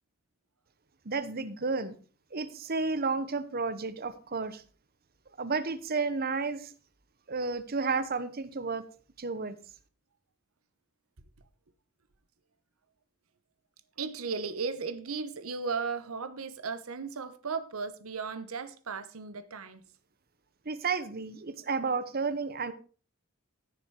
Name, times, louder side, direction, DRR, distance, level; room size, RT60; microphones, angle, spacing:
voice 1, 1.0-1.9 2.3-4.6 5.4-6.7 7.3-8.8 9.2-9.6 20.6-22.7, right 4 dB, 45° right, 1.0 m, -32 dB
voice 2, 14.0-19.8, right 5 dB, 85° right, 1.0 m, -36 dB
14.5 x 6.7 x 4.8 m
head